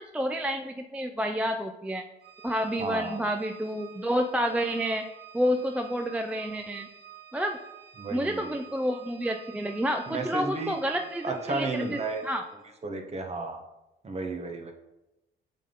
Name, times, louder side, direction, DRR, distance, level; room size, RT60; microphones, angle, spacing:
voice 1, 0.0-2.0 2.4-5.0 5.3-6.9 7.3-7.6 8.1-12.4, equal, 5° right, 4 dB, 0.4 m, -29 dB
Organ, 2.2-12.6, right 10 dB, 55° right, 1.6 m, -50 dB
voice 2, 2.8-3.3 8.0-8.5 10.1-10.8 11.2-12.2 12.8-13.6 14.0-14.7, right 3 dB, 35° right, 4 dB, 1.0 m, -33 dB
7.4 x 3.6 x 3.8 m, 0.96 s
cardioid pair, 90°, 20 cm